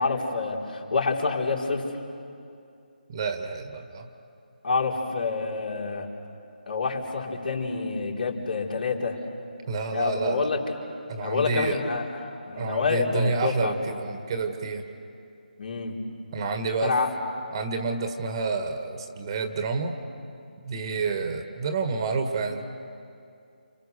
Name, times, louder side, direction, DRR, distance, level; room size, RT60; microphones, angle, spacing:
voice 1, 0.0-1.8 4.6-6.1 6.7-9.2 9.9-10.6 11.2-13.7 15.6-16.0 16.8-17.2, left 4 dB, 60° left, -1 dB, 4.5 m, -27 dB
voice 2, 3.1-4.1 9.7-10.5 11.1-11.8 12.6-14.8 16.3-17.0 17.5-20.0 20.6-22.7, right 4 dB, 30° right, 6 dB, 1.7 m, -29 dB
30.0 x 28.5 x 6.7 m, 2.5 s
figure-of-eight pair, 155°, 5 cm